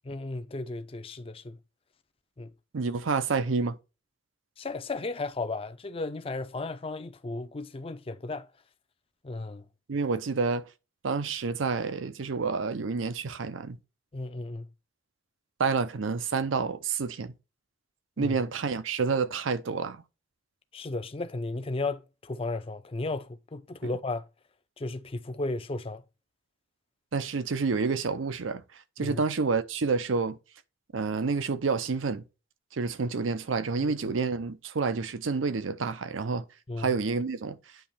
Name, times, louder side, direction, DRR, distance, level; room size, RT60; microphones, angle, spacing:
voice 1, 0.1-1.6 2.4-2.5 4.6-8.5 9.2-9.6 14.1-14.7 18.2-18.4 20.7-24.3 24.8-26.0 29.0-29.2 33.8-33.9 36.7-36.9, left 2 dB, 30° left, 0.5 m, -34 dB
voice 2, 2.7-3.8 9.9-10.6 11.0-13.8 15.6-17.3 18.2-20.0 23.8-23.9 27.1-28.6 29.0-30.4 30.9-32.2 32.7-36.4 36.8-37.6, right 4 dB, 90° right, 0.6 m, -29 dB
9.0 x 3.0 x 4.2 m
head